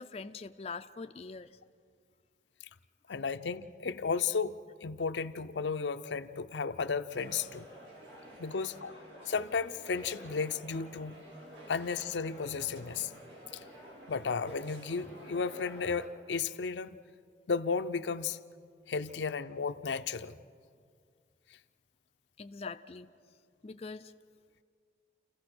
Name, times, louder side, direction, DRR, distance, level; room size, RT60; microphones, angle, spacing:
voice 1, 0.0-1.6 22.4-23.1 23.6-24.1, left 4 dB, 35° left, 0.4 m, -43 dB
voice 2, 3.1-7.7 8.4-11.2 11.7-13.1 13.5-13.6 14.1-17.0 17.5-18.4 18.9-20.4, left 5 dB, 90° left, 0.6 m, -34 dB
sound 1, 7.1-16.1, right 1 dB, 85° right, 3.6 m, -50 dB
29.5 x 15.0 x 6.1 m
head